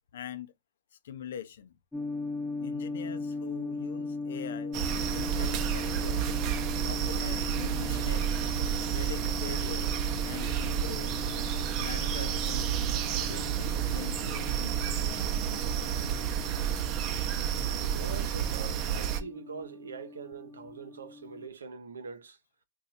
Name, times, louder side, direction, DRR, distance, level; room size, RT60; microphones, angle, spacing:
voice 1, 0.1-0.5 1.0-1.7 2.6-6.4 6.8-8.4 8.9-11.1 11.8-12.7 13.2-15.0, left 9 dB, 75° left, 0.6 m, -43 dB
sound 1, 1.9-21.5, left 3 dB, 5° left, 0.7 m, -39 dB
sound 2, 4.7-19.2, right 9 dB, 40° right, 0.6 m, -30 dB
voice 2, 17.6-22.4, right 5 dB, 90° right, 0.7 m, -43 dB
2.7 x 2.3 x 4.1 m
hypercardioid pair, 115°, 0 cm